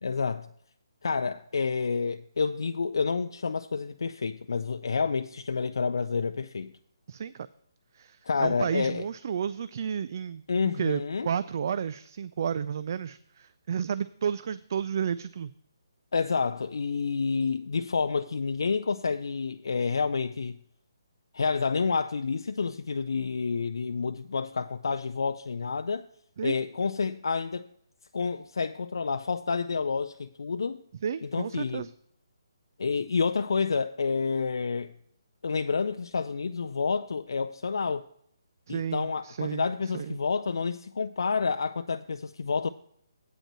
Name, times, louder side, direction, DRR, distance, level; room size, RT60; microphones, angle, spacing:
voice 1, 0.0-0.5 1.0-6.7 8.3-9.0 10.5-11.3 16.1-20.6 21.3-26.1 26.4-27.7 28.1-30.8 31.2-31.9 32.8-34.9 35.4-38.1 38.7-42.7, left 5 dB, 75° left, 0.4 m, -29 dB
voice 2, 7.1-7.5 7.9-10.4 10.8-15.5 26.4-26.5 31.0-31.9 38.7-40.2, right 7 dB, 50° right, 0.3 m, -32 dB
8.8 x 5.3 x 7.4 m
figure-of-eight pair, 150°, 2 cm